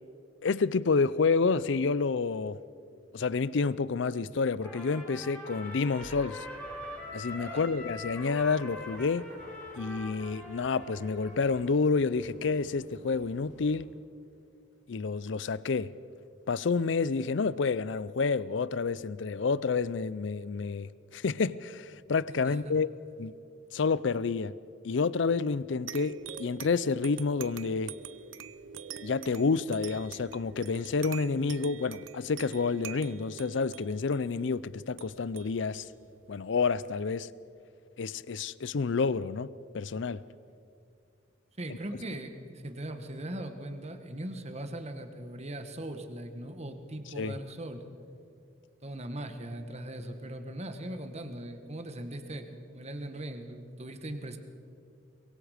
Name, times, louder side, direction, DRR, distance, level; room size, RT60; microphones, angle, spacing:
voice 1, 0.4-2.6 3.1-6.5 7.1-9.3 9.8-13.9 14.9-15.9 16.5-22.9 23.2-23.3 23.7-24.5 24.8-27.9 29.0-35.9 36.3-37.3 38.0-39.5 39.7-40.2 47.1-47.3, left 4 dB, 65° left, 0.5 m, -29 dB
Trumpet, 4.6-11.3, left 1 dB, 10° left, 4.9 m, -43 dB
sound 1, 6.0-13.8, equal, 40° left, 6.1 m, -54 dB
voice 2, 22.4-22.8 41.6-47.8 48.8-54.4, right 1 dB, 35° right, 1.5 m, -40 dB
sound 2, 25.9-37.0, right 8 dB, 85° right, 0.7 m, -46 dB
23.5 x 22.0 x 5.1 m
head